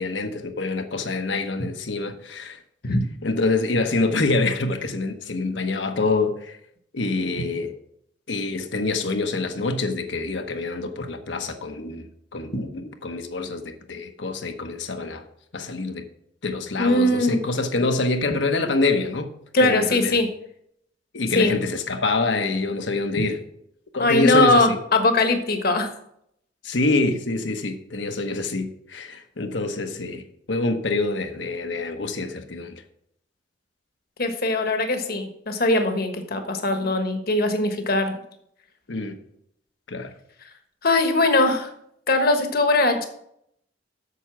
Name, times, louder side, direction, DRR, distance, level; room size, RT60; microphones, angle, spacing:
voice 1, 0.0-2.6 3.2-6.6 6.9-7.7 8.3-12.1 12.3-15.2 15.5-16.0 16.4-19.3 19.6-20.2 21.1-23.4 23.9-24.8 26.6-30.2 30.5-32.8 38.9-39.1 39.9-40.1, left 3 dB, 70° left, 1.1 m, -26 dB
voice 2, 16.8-17.4 19.5-20.3 21.3-21.5 24.0-25.9 34.2-38.1 40.8-41.7 42.1-43.1, left 2 dB, 55° left, 1.4 m, -20 dB
8.1 x 6.8 x 6.1 m
head